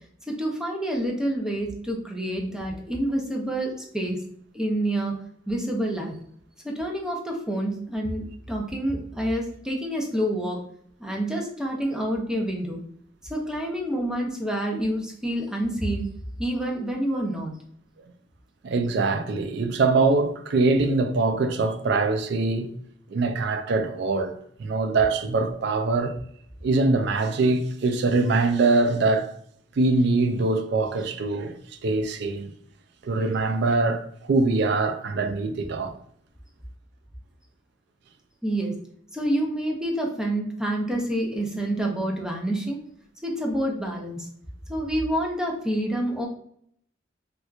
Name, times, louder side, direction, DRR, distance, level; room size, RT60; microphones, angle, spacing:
voice 1, 0.3-4.2 4.5-5.2 5.5-6.2 6.6-10.6 11.0-12.8 13.3-16.1 16.4-17.5 38.4-38.7 39.1-42.8 43.2-44.3 44.7-46.3, right 1 dB, 5° right, 0.6 m, -28 dB
voice 2, 18.6-22.7 23.1-24.3 24.6-26.1 26.6-29.3 29.8-31.5 31.8-32.5 33.0-35.9, right 3 dB, 65° right, 0.4 m, -23 dB
4.1 x 2.3 x 2.4 m
head